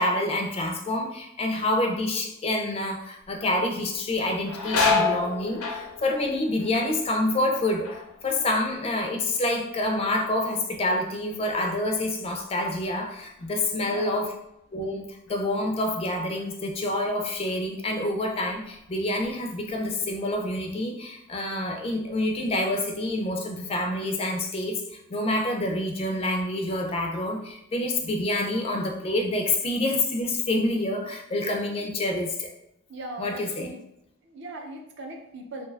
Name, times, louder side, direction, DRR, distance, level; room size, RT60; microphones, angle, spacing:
voice 1, 0.0-14.3 14.7-24.8 25.1-32.5 33.2-33.7, left 1 dB, 25° left, 3 dB, 0.3 m, -27 dB
sound 1, 3.2-3.6 3.9-9.5 9.8-10.4 10.9-13.9 14.2-14.3 15.3-15.5 15.9-17.0 17.5-17.6 18.2-18.9 19.2-20.4, left 4 dB, 90° left, 0.6 m, -31 dB
voice 2, 13.8-14.4 32.9-33.8 34.2-35.7, right 2 dB, 55° right, 2 dB, 0.5 m, -39 dB
2.6 x 2.3 x 3.2 m, 0.83 s
head